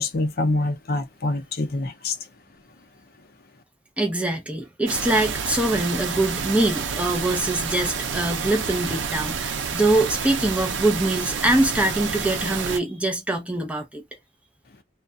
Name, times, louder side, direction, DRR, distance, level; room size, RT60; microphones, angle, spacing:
voice 1, 0.0-2.2, left 2 dB, 55° left, 0.5 m, -25 dB
voice 2, 4.0-14.0, right 1 dB, 5° right, 0.5 m, -23 dB
sound 1, 4.9-12.8, right 6 dB, 85° right, 0.5 m, -29 dB
2.3 x 2.2 x 2.5 m
head